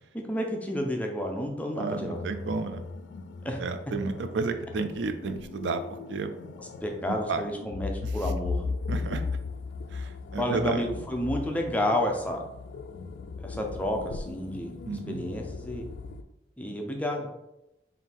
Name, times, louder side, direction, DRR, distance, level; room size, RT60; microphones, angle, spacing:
voice 1, 0.3-2.2 3.4-3.6 6.6-8.6 9.1-9.2 10.4-12.4 13.4-14.7 15.1-15.9 16.6-17.3, left 1 dB, 10° left, 2 dB, 0.5 m, -30 dB
voice 2, 1.8-2.8 3.6-6.3 7.3-7.4 8.9-9.2 9.9-10.8 14.9-15.2, right 4 dB, 80° right, 8 dB, 0.4 m, -32 dB
sound 1, 2.1-16.2, left 4 dB, 80° left, 0.3 m, -37 dB
3.7 x 2.6 x 4.1 m, 0.90 s
head